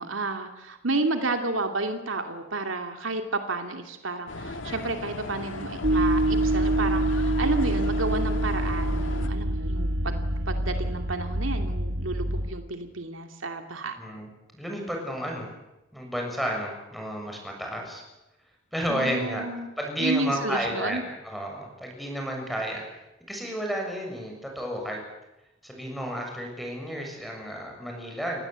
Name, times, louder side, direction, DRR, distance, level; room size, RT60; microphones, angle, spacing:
voice 1, 0.0-14.0 18.9-19.7 20.0-21.0, right 3 dB, 90° right, 6 dB, 2.6 m, -31 dB
sound 1, 4.3-9.3, left 2 dB, 75° left, 2.1 m, -37 dB
sound 2, 5.8-12.5, right 1 dB, 60° right, 2.0 m, -26 dB
voice 2, 14.0-15.5 15.9-18.0 18.7-19.4 19.8-22.8 23.3-25.0 25.6-28.4, equal, ahead, 1 dB, 7.0 m, -32 dB
29.0 x 20.0 x 8.3 m, 0.95 s
head